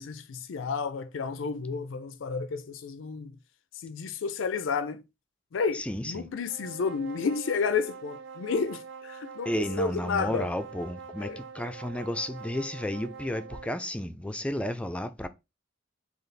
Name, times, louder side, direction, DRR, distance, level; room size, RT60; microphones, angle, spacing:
voice 1, 0.0-3.4 3.8-5.0 5.5-10.5 11.2-11.4, left 5 dB, 80° left, 0.4 m, -31 dB
voice 2, 5.7-6.3 9.5-15.3, left 1 dB, 5° left, 0.3 m, -32 dB
sound 1, 6.4-13.8, right 6 dB, 75° right, 0.5 m, -44 dB
4.0 x 2.4 x 3.3 m
head